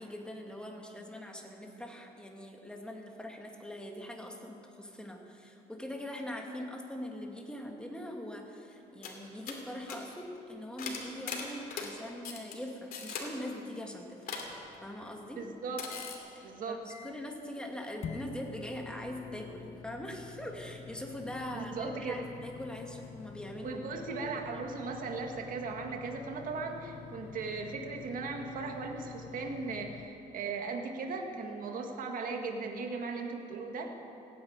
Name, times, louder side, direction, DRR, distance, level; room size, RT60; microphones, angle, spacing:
voice 1, 0.0-14.4 14.8-15.4 16.3-23.8 24.2-24.6, left 1 dB, 5° left, 1 dB, 2.1 m, -42 dB
sound 1, 8.7-8.8 9.0-9.2 9.5-9.6 9.9-10.0 10.8-11.9 12.2-12.5 12.9-13.3 14.3-14.5 15.8-16.2, left 6 dB, 60° left, 2.7 m, -39 dB
sound 2, 14.4-16.1 16.6-16.7 16.9-17.4 18.0-30.1, left 6 dB, 45° left, 0.8 m, -48 dB
voice 2, 15.4-15.8 16.4-16.8 21.5-22.2 23.6-33.9, right 4 dB, 55° right, 3 dB, 1.9 m, -37 dB
16.5 x 9.7 x 8.9 m, 2.8 s
cardioid pair, 110°, 17 cm